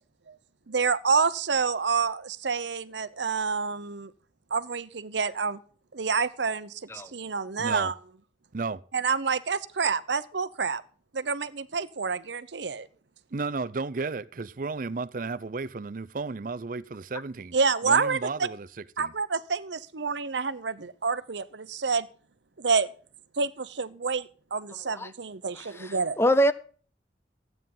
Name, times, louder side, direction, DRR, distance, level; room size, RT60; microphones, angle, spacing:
voice 1, 0.7-4.1 4.5-5.6 5.9-6.7 7.1-7.9 8.9-10.8 11.1-12.9 17.5-18.3 19.0-22.1 22.6-22.9 23.4-26.2, right 5 dB, 80° right, 0.8 m, -28 dB
voice 2, 7.6-7.9 8.5-8.8 13.3-17.6 17.8-19.1, right 4 dB, 50° right, 0.5 m, -33 dB
voice 3, 25.6-26.5, equal, 15° left, 0.6 m, -25 dB
14.5 x 9.2 x 5.5 m
head